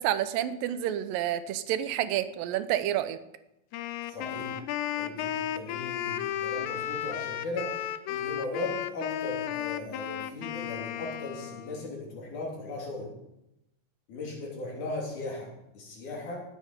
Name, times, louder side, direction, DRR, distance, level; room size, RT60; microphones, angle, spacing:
voice 1, 0.0-3.2, right 11 dB, 85° right, 12 dB, 2.4 m, -29 dB
Wind instrument woodwind instrument, 3.7-11.9, left 11 dB, 80° left, 1.8 m, -34 dB
voice 2, 4.1-4.6 5.0-7.7 8.1-13.1 14.1-15.5 15.7-16.4, left 2 dB, 65° left, -1 dB, 4.3 m, -37 dB
18.5 x 7.8 x 5.1 m, 0.88 s
omnidirectional pair, 4.0 m